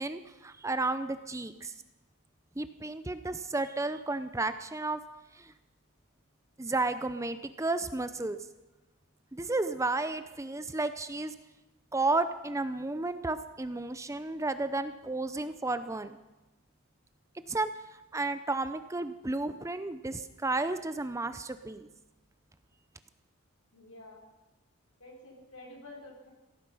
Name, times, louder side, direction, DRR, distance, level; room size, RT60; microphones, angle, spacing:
voice 1, 0.0-1.7 2.6-5.0 5.3-5.5 6.6-8.4 9.3-11.3 11.9-16.1 17.5-17.7 18.1-21.9, right 2 dB, 15° right, 11 dB, 0.6 m, -32 dB
voice 2, 23.7-24.2 25.0-26.3, left 2 dB, 80° left, -1 dB, 4.8 m, -49 dB
16.0 x 15.0 x 5.5 m, 1.0 s
head